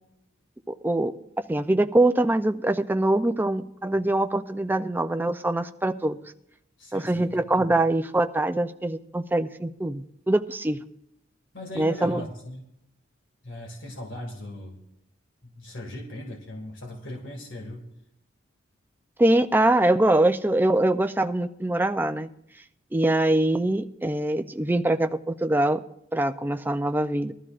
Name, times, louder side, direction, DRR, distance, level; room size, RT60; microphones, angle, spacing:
voice 1, 0.7-1.1 1.5-6.2 6.9-10.8 11.8-12.2 19.2-22.3 22.9-25.8 26.1-27.3, right 1 dB, 10° right, 9 dB, 0.4 m, -23 dB
voice 2, 6.8-7.7 11.5-12.6 13.4-14.8 15.4-17.8, left 1 dB, 75° left, 1 dB, 2.0 m, -39 dB
21.0 x 13.0 x 2.5 m, 0.80 s
head